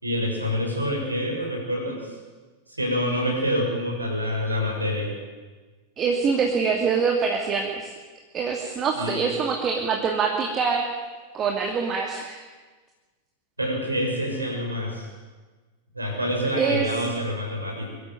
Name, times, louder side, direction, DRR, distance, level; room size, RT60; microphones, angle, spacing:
voice 1, 0.0-2.2 2.7-5.1 9.0-9.3 13.6-15.1 15.9-17.9, equal, 85° right, 0 dB, 6.5 m, -27 dB
voice 2, 6.0-7.9 8.3-10.9 11.3-12.4 16.5-16.9, right 5 dB, 30° right, 1 dB, 2.7 m, -24 dB
23.5 x 13.5 x 9.4 m, 1.3 s
figure-of-eight pair, 90°, 0 cm